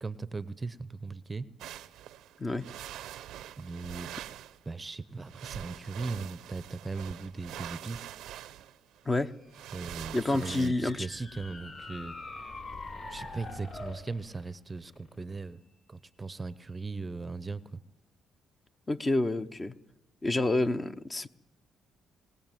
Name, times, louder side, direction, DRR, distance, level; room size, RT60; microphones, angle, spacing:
voice 1, 0.0-1.5 3.6-4.1 4.7-8.0 9.7-12.1 13.1-15.6 15.9-17.8, right 3 dB, 25° right, 16 dB, 0.7 m, -38 dB
sound 1, 1.6-4.6 5.2-10.7, right 12 dB, 90° right, 0.7 m, -44 dB
sound 2, 9.6-14.0, left 3 dB, 45° left, 4.2 m, -44 dB
voice 2, 10.1-11.1 18.9-19.7 20.2-21.3, left 2 dB, 25° left, 9 dB, 0.9 m, -28 dB
sound 3, 11.4-15.8, left 1 dB, 80° left, 5.3 m, -55 dB
20.5 x 17.5 x 9.1 m, 0.89 s
cardioid pair, 90°, 0 cm